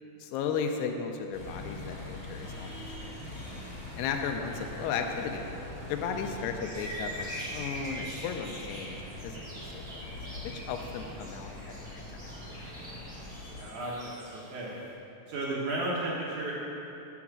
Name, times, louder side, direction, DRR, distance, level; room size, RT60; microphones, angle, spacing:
voice 1, 0.2-3.1 4.0-5.5 5.9-9.0 9.2-10.0 10.4-12.0, left 6 dB, 85° left, 5 dB, 2.5 m, -35 dB
sound 1, 1.3-13.6, left 1 dB, 40° left, 1.9 m, -43 dB
sound 2, 6.6-14.9, right 1 dB, 25° right, 1.2 m, -43 dB
voice 2, 13.6-14.7 15.3-16.5, right 2 dB, 65° right, -5 dB, 2.0 m, -33 dB
7.1 x 5.8 x 7.4 m, 2.7 s
omnidirectional pair, 5.0 m